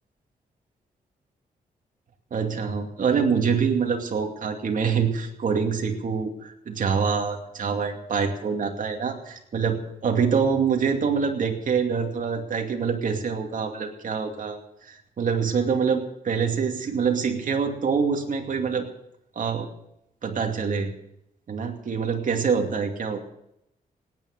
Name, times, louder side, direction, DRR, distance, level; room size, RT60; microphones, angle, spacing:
voice 1, 2.3-18.9 19.4-19.7 20.2-20.9 21.5-23.3, right 6 dB, 60° right, 3 dB, 2.5 m, -25 dB
18.0 x 9.8 x 6.6 m, 0.81 s
cardioid pair, 95°, 15 cm